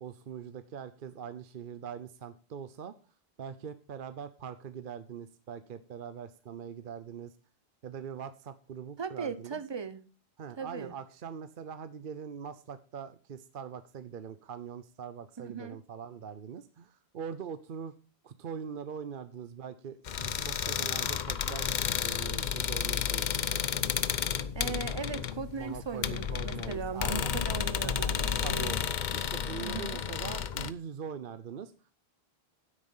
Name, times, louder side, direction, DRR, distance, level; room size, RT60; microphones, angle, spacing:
voice 1, 0.0-2.9 3.4-7.3 7.8-9.6 10.4-17.9 18.2-21.7 22.0-23.8 25.6-27.3 27.8-28.8 29.1-31.7, right 7 dB, 60° right, 0.8 m, -42 dB
voice 2, 9.0-10.0 10.6-10.9 15.4-15.8 24.5-28.7 29.6-30.0, right 5 dB, 30° right, 0.7 m, -38 dB
sound 1, 20.1-30.7, left 8 dB, 55° left, 0.7 m, -32 dB
9.6 x 8.2 x 5.5 m
omnidirectional pair, 1.0 m